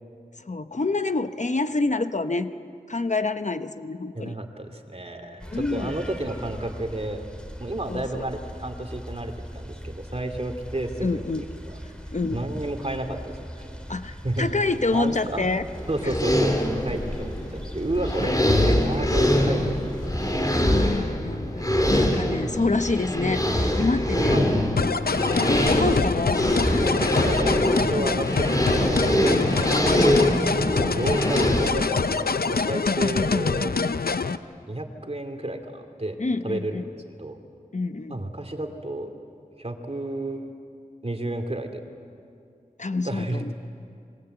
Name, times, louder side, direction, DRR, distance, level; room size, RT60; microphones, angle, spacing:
voice 1, 0.4-2.5 2.9-4.3 5.5-5.9 7.9-8.2 11.0-11.5 12.1-12.5 13.9-15.6 16.0-16.1 20.5-24.4 25.5-26.4 27.9-28.1 33.6-34.0 36.2-36.8 37.7-38.2 42.8-43.5, left 3 dB, 50° left, 9 dB, 0.9 m, -27 dB
voice 2, 4.1-7.2 7.6-11.3 11.7-11.8 12.3-13.8 14.2-14.5 14.9-15.5 15.9-20.5 21.7-21.9 22.4-22.6 24.2-24.5 24.9-25.4 25.7-26.0 27.0-30.1 30.6-33.7 34.7-36.2 36.4-36.8 37.2-37.4 38.1-39.1 39.6-40.5 41.0-41.8 43.0-43.5, right 1 dB, 40° right, 5 dB, 2.7 m, -31 dB
sound 1, 5.4-20.5, equal, 5° left, 3.2 m, -40 dB
sound 2, 15.8-31.7, left 1 dB, 25° left, 3.4 m, -23 dB
sound 3, 24.8-34.4, left 4 dB, 85° left, 0.7 m, -25 dB
27.5 x 23.0 x 8.0 m, 2.4 s
wide cardioid pair, 50°, 15 cm